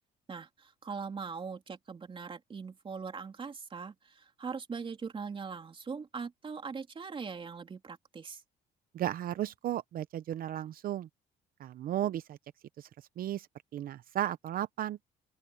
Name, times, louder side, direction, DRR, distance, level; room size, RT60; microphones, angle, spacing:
voice 1, 0.3-8.4, right 5 dB, 30° right, 3.4 m, -41 dB
voice 2, 8.9-11.1 11.6-12.4 12.8-12.9 13.2-13.5 13.7-15.0, right 12 dB, 60° right, 0.8 m, -34 dB
open air
cardioid pair, 110°, 17 cm